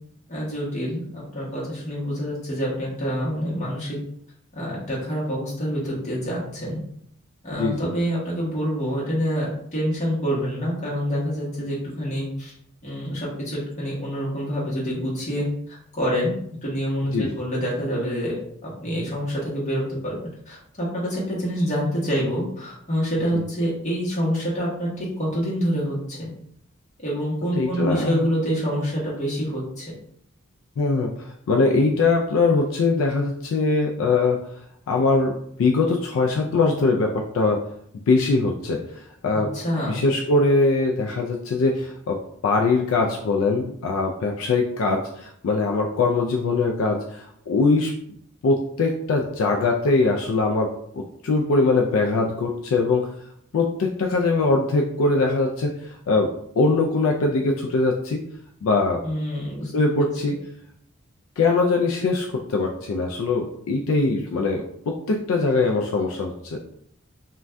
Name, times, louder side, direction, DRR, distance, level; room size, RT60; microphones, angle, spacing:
voice 1, 0.3-4.0 4.5-6.8 7.4-12.5 12.8-16.3 16.6-18.3 18.6-20.2 20.5-26.3 27.0-29.9 39.3-40.0 59.0-60.1, equal, 35° left, -5 dB, 1.0 m, -27 dB
voice 2, 7.6-7.9 17.1-17.3 23.3-23.4 27.5-28.3 30.8-34.4 34.9-37.6 38.1-39.5 39.9-47.9 48.4-53.1 53.5-58.2 58.6-59.0 59.7-60.4 61.4-66.6, left 3 dB, 70° left, 2 dB, 0.3 m, -22 dB
2.5 x 2.2 x 3.2 m, 0.69 s
head